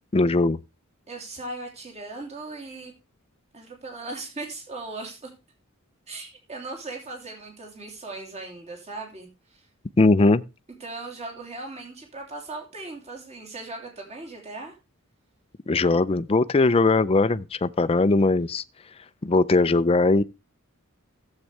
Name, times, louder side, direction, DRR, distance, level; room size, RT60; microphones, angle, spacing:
voice 1, 0.1-0.6 10.0-10.4 15.7-18.6 19.2-20.2, left 3 dB, 25° left, 0.4 m, -20 dB
voice 2, 1.1-2.9 3.5-5.3 6.1-9.7 10.8-14.7, right 2 dB, 30° right, 2.9 m, -38 dB
15.0 x 7.5 x 3.3 m
head